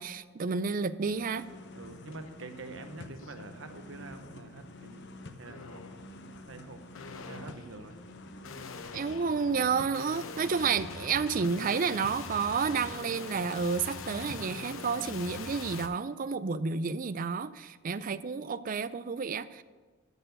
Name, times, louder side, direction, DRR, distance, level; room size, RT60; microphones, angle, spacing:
voice 1, 0.0-1.5 8.9-19.6, right 5 dB, 45° right, 15 dB, 0.4 m, -30 dB
sound 1, 1.0-15.5, left 2 dB, 60° left, 0.8 m, -48 dB
voice 2, 1.7-5.0 5.4-5.8 6.5-8.0, right 3 dB, 70° right, 7 dB, 1.0 m, -46 dB
sound 2, 2.1-2.3 2.7-3.4 3.9-4.4 5.4-6.1 6.9-15.9, left 5 dB, 85° left, 0.8 m, -44 dB
13.5 x 4.5 x 8.0 m, 1.3 s
head